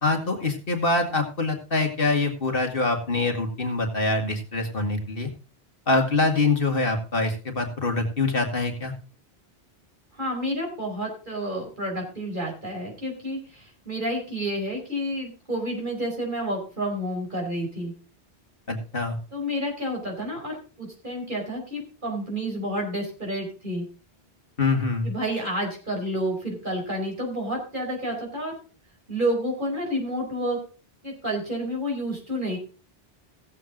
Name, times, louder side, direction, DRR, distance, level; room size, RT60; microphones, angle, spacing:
voice 1, 0.0-5.3 5.9-8.9 18.7-19.2 24.6-25.1, left 3 dB, 60° left, 3 dB, 2.3 m, -24 dB
voice 2, 10.2-17.9 19.3-23.8 25.0-28.5 29.1-30.6 31.0-32.6, equal, 50° right, 0 dB, 5.2 m, -30 dB
17.0 x 7.6 x 3.8 m, 0.36 s
omnidirectional pair, 1.1 m